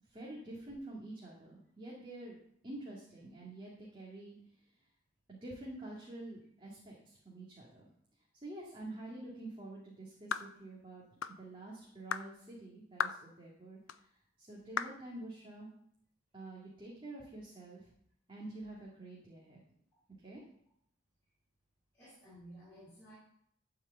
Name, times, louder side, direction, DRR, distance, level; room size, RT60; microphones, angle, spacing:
voice 1, 0.0-2.4 2.6-4.7 5.3-7.9 8.4-11.0 11.4-14.1 14.4-15.7 16.3-17.9 18.3-19.6 20.2-20.4, right 2 dB, 25° right, -4 dB, 2.1 m, -48 dB
sound 1, 10.3-10.5 11.2-11.4 12.1-12.3 13.0-13.2 13.9-14.0 14.8-15.0, left 7 dB, 85° left, 0.5 m, -35 dB
voice 2, 21.9-23.2, right 1 dB, 15° left, -11 dB, 4.9 m, -54 dB
12.5 x 4.9 x 7.9 m, 0.69 s
head